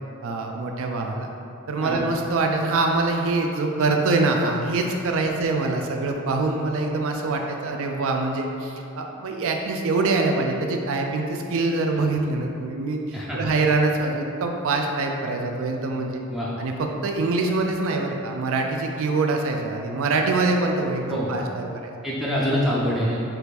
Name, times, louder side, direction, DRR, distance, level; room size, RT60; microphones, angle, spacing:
voice 1, 0.2-1.3 1.7-16.2 16.6-21.9, right 3 dB, 65° right, 2 dB, 0.4 m, -24 dB
voice 2, 13.1-13.5 16.3-16.5 21.1-21.3 22.0-23.2, equal, ahead, -7 dB, 0.4 m, -25 dB
4.5 x 2.6 x 4.0 m, 2.7 s
head